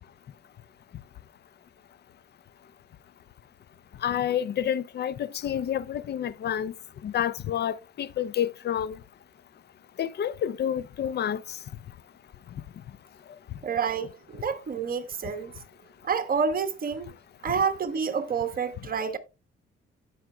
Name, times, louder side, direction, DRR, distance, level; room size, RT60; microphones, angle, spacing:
voice 1, 4.0-5.1 5.4-6.7 7.0-8.9 10.0-11.4, left 9 dB, 55° left, 0.6 m, -28 dB
voice 2, 13.6-15.5 16.0-17.1 17.4-19.2, right 6 dB, 45° right, 1.4 m, -28 dB
16.0 x 5.8 x 2.3 m
cardioid pair, 90°, 20 cm